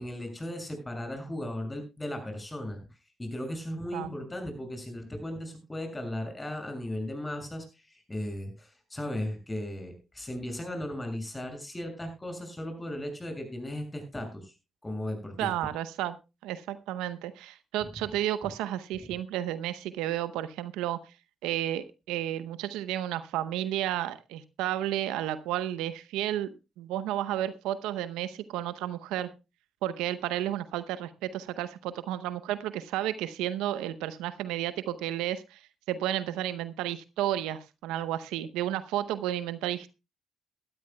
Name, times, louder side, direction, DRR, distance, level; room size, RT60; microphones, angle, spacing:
voice 1, 0.0-2.8 3.2-14.5 14.8-15.5 19.0-19.1, left 1 dB, 20° left, 6 dB, 6.5 m, -36 dB
voice 2, 15.4-16.2 16.4-21.0 21.4-29.3 29.8-39.9, right 12 dB, 85° right, 14 dB, 0.7 m, -32 dB
19.0 x 13.0 x 2.2 m, 0.27 s
hypercardioid pair, 45°, 0 cm